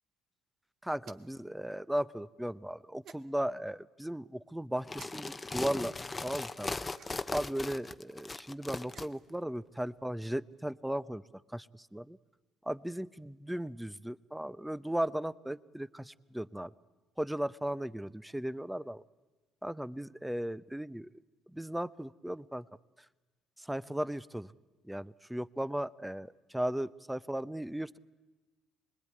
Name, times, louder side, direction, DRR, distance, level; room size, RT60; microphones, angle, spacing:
voice 1, 0.8-6.0 6.2-6.7 7.3-11.2 11.5-12.2 12.6-16.7 17.2-19.0 19.6-21.1 21.5-22.7 23.6-24.5 24.8-28.0, right 1 dB, 5° right, 16 dB, 0.7 m, -36 dB
sound 1, 1.0-1.4 3.0-3.2 4.9-5.1 6.9-7.4 8.7-9.3, right 8 dB, 60° right, 1.2 m, -54 dB
sound 2, 4.8-9.1, left 3 dB, 25° left, 0.9 m, -38 dB
25.5 x 21.0 x 9.6 m, 1.2 s
supercardioid pair, 70°, 0 cm